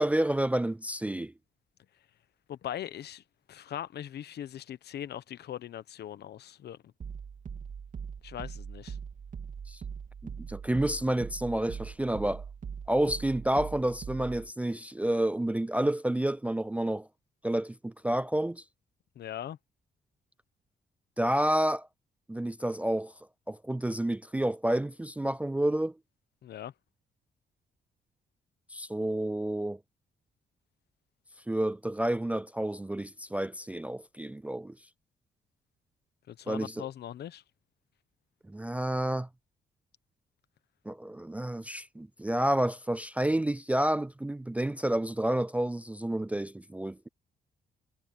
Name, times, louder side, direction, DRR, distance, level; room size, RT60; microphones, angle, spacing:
voice 1, 0.0-1.3 9.7-9.8 10.2-12.4 12.9-17.1 17.4-18.6 21.2-21.9 22.3-23.1 23.5-25.9 28.7-29.8 31.5-34.7 36.5-36.8 38.5-39.3 40.9-47.1, right 1 dB, 10° right, 0.4 m, -29 dB
voice 2, 2.5-3.2 3.5-6.8 8.2-9.0 19.1-19.6 26.4-26.7 36.3-37.4, left 11 dB, 65° left, 1.0 m, -40 dB
sound 1, 7.0-14.5, right 6 dB, 45° right, 3.1 m, -41 dB
cardioid pair, 130°, 18 cm